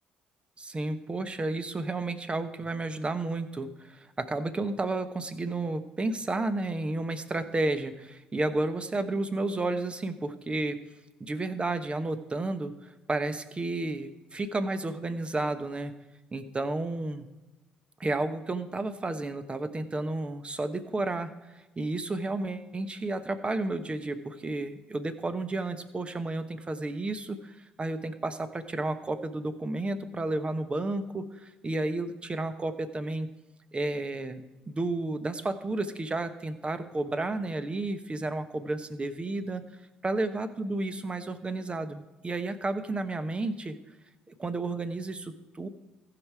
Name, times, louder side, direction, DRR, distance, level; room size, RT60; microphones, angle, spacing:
voice 1, 0.6-10.8 11.2-15.9 16.3-17.3 18.0-33.3 33.7-39.6 40.0-43.8 44.4-45.7, right 2 dB, 30° right, 10 dB, 1.1 m, -32 dB
15.0 x 5.9 x 4.8 m, 1.1 s
supercardioid pair, 60°, 4 cm